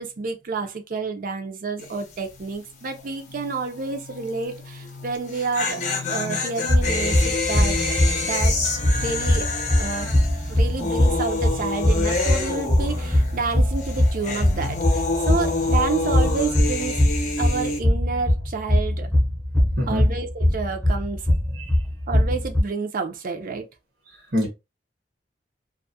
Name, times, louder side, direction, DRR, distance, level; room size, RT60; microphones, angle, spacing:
voice 1, 0.0-5.8 6.1-7.8 8.2-8.6 9.0-10.1 10.5-17.0 17.4-19.1 19.9-21.3 22.1-23.6, right 4 dB, 50° right, 0.5 m, -29 dB
sound 1, 1.8-2.1 2.4-2.5 5.1-13.5 13.8-17.8, left 3 dB, 45° left, 0.6 m, -27 dB
sound 2, 2.3-17.0, left 2 dB, 90° left, 0.6 m, -41 dB
sound 3, 6.7-22.6, left 1 dB, ahead, 0.6 m, -22 dB
voice 2, 19.8-20.1 21.5-21.8 24.1-24.5, equal, 80° right, 0.9 m, -26 dB
2.3 x 2.1 x 2.6 m
head